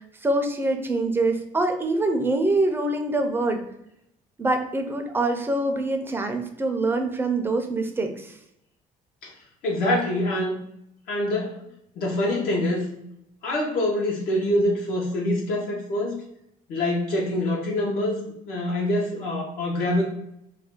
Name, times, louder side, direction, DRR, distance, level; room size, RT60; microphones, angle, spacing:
voice 1, 0.2-3.6 4.4-8.3, right 2 dB, 15° right, 5 dB, 0.4 m, -24 dB
voice 2, 9.6-10.6 11.1-11.6 12.0-12.9 13.4-16.1 16.7-20.0, left 1 dB, 70° left, -3 dB, 0.7 m, -25 dB
2.4 x 2.1 x 3.6 m, 0.78 s
cardioid pair, 125°, 15 cm